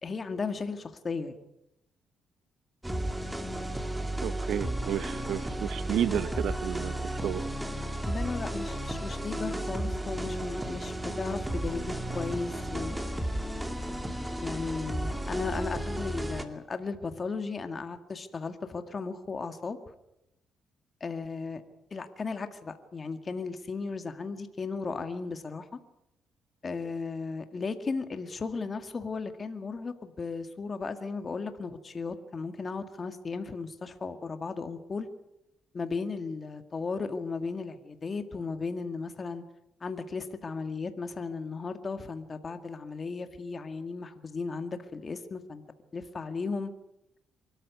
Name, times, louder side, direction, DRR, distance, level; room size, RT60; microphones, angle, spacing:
voice 1, 0.0-1.4 8.0-13.0 14.4-19.8 21.0-21.6 21.9-25.8 26.6-35.1 35.7-39.4 39.8-45.6 45.9-46.7, left 4 dB, 35° left, 8 dB, 2.0 m, -35 dB
sound 1, 2.8-16.5, right 1 dB, 10° right, 2.4 m, -33 dB
voice 2, 4.2-6.9 7.2-7.4, right 9 dB, 75° right, 16 dB, 0.9 m, -31 dB
24.0 x 13.5 x 9.6 m, 0.87 s
cardioid pair, 90°, 0 cm